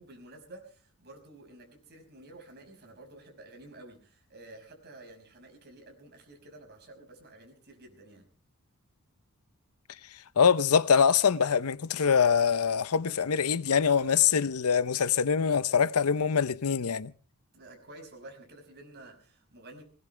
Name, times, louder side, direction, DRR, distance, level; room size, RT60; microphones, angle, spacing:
voice 1, 0.0-8.2 17.5-19.8, right 2 dB, 50° right, 5.6 m, -51 dB
voice 2, 10.4-17.1, left 6 dB, 75° left, 0.7 m, -24 dB
20.0 x 18.5 x 3.3 m
head